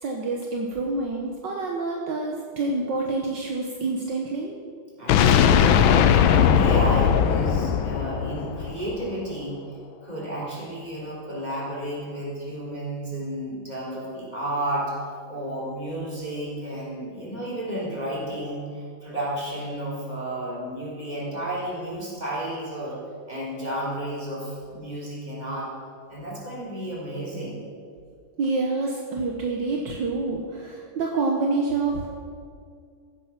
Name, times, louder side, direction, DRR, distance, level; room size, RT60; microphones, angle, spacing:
voice 1, 0.0-4.6 28.4-32.1, right 3 dB, 65° right, 0 dB, 1.7 m, -27 dB
voice 2, 5.0-9.6 10.0-15.0 15.3-23.0 23.3-25.7 26.1-27.6, right 1 dB, 20° right, -5 dB, 3.7 m, -32 dB
sound 1, 5.1-9.0, left 8 dB, 85° left, 1.5 m, -19 dB
15.5 x 9.3 x 5.9 m, 2.2 s
omnidirectional pair, 2.2 m